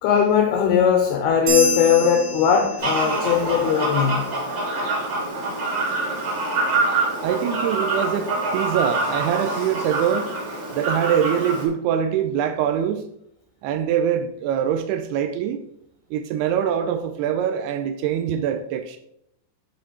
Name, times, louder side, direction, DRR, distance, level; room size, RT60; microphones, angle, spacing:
voice 1, 0.0-4.3, left 7 dB, 85° left, 5 dB, 2.3 m, -19 dB
sound 1, 1.5-3.3, right 1 dB, 60° right, 3.1 m, -27 dB
Fowl, 2.8-11.6, right 2 dB, 35° right, 1.8 m, -25 dB
voice 2, 7.2-10.3 10.7-13.0 13.6-15.6 16.1-19.0, right 9 dB, 85° right, 7 dB, 2.3 m, -23 dB
10.5 x 4.2 x 4.2 m, 0.76 s
omnidirectional pair, 5.2 m